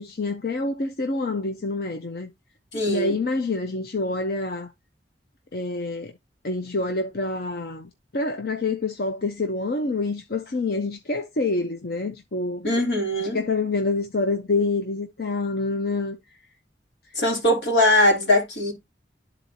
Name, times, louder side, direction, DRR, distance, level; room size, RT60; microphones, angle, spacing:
voice 1, 0.0-2.3 2.9-4.7 5.5-6.1 6.4-12.7 13.3-16.2, left 3 dB, 60° left, 0.7 m, -27 dB
voice 2, 2.7-3.1 12.6-13.4 17.1-18.7, left 1 dB, 85° left, 2.9 m, -21 dB
12.0 x 4.1 x 2.7 m
head